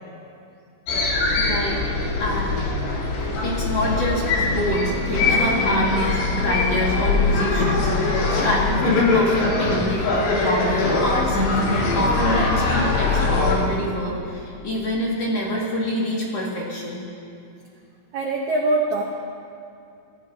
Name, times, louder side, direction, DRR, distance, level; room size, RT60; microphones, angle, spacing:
sound 1, 0.9-13.6, left 3 dB, 85° left, 4.5 m, -22 dB
voice 1, 1.3-1.9 2.2-2.6 3.4-17.0, left 1 dB, 45° left, -5 dB, 2.6 m, -26 dB
voice 2, 18.1-19.0, right 2 dB, 75° right, 0 dB, 1.7 m, -22 dB
25.5 x 15.5 x 2.8 m, 2.6 s
omnidirectional pair, 4.8 m